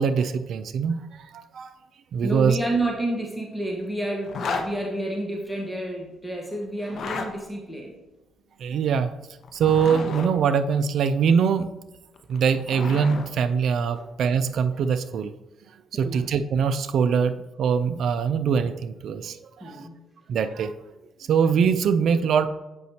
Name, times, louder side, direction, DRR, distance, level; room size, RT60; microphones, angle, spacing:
voice 1, 0.0-1.7 2.1-2.6 8.6-9.1 9.5-11.7 12.3-15.3 15.9-19.9 20.3-20.7 21.3-22.5, right 6 dB, 70° right, 11 dB, 0.3 m, -23 dB
voice 2, 2.2-7.9 13.9-14.0 15.9-16.3 19.6-20.0 21.2-21.3, right 1 dB, 5° left, -1 dB, 1.2 m, -30 dB
Zipper (clothing), 4.3-4.7 6.8-7.3 9.4-10.3 12.2-13.3, left 5 dB, 60° left, 0.7 m, -32 dB
7.8 x 5.1 x 2.8 m, 1.0 s
cardioid pair, 90°, 0 cm